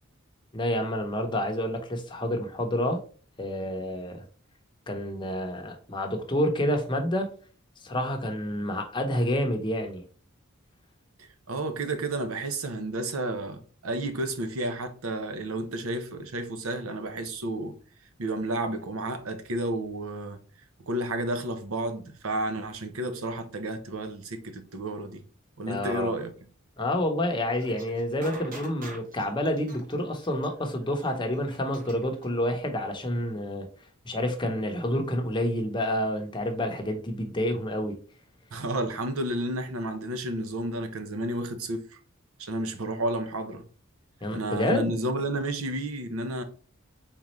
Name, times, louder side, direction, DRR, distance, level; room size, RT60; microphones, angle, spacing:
voice 1, 0.5-3.0 3.4-4.2 4.9-7.3 7.8-10.0 25.7-26.1 26.8-33.7 34.0-38.0 44.2-44.9, left 1 dB, 20° left, 0.8 m, -28 dB
voice 2, 11.2-17.8 18.2-20.4 20.9-25.2 25.6-26.3 38.5-42.0 42.4-43.6 44.3-46.4, right 1 dB, 80° right, 0.7 m, -31 dB
sound 1, 27.5-32.3, right 1 dB, 40° right, 1.1 m, -46 dB
4.1 x 3.7 x 3.1 m
head